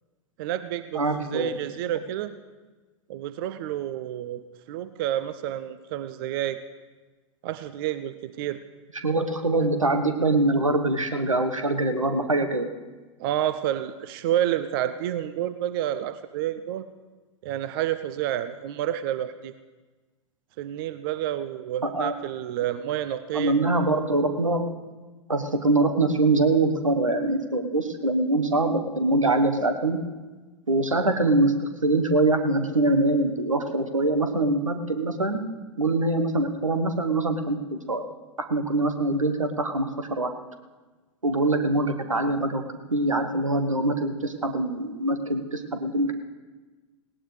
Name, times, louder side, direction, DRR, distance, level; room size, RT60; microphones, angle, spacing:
voice 1, 0.4-2.3 3.1-6.6 7.4-8.6 13.2-16.8 17.4-19.5 20.6-23.6, right 12 dB, 45° right, 13 dB, 0.6 m, -29 dB
voice 2, 0.9-1.6 9.0-12.7 21.8-22.2 23.3-24.7 25.3-30.0 30.7-35.4 35.8-38.0 38.4-40.3 41.2-42.6 42.9-46.1, right 2 dB, 85° right, 7 dB, 1.1 m, -24 dB
18.5 x 17.5 x 3.3 m, 1.3 s
figure-of-eight pair, 90°, 16 cm